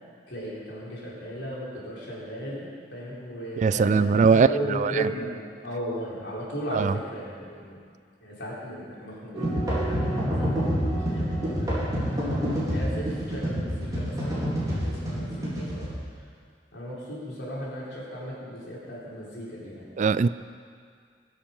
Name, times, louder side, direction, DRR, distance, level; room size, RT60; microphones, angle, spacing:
voice 1, 0.3-5.3 5.6-7.8 8.2-10.6 11.1-12.4 12.7-15.9 16.7-19.9, right 1 dB, 90° left, -7 dB, 4.3 m, -36 dB
voice 2, 3.6-5.1 6.7-7.0 20.0-20.3, right 5 dB, 45° right, 16 dB, 0.3 m, -21 dB
sound 1, 9.3-15.9, equal, 20° right, 3.9 m, -27 dB
19.0 x 7.3 x 5.5 m, 2.1 s
head